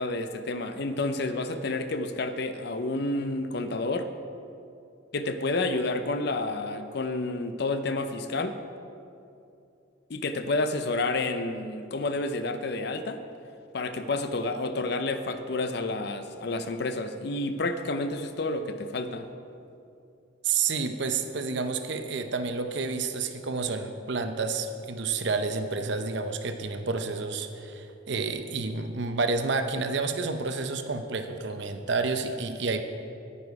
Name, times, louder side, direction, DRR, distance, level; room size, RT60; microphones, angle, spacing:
voice 1, 0.0-4.1 5.1-8.6 10.1-13.2 13.7-19.3, left 2 dB, 55° left, 9 dB, 0.5 m, -30 dB
voice 2, 20.4-32.8, right 4 dB, 60° right, 8 dB, 0.6 m, -30 dB
10.0 x 9.7 x 4.7 m, 2.6 s
head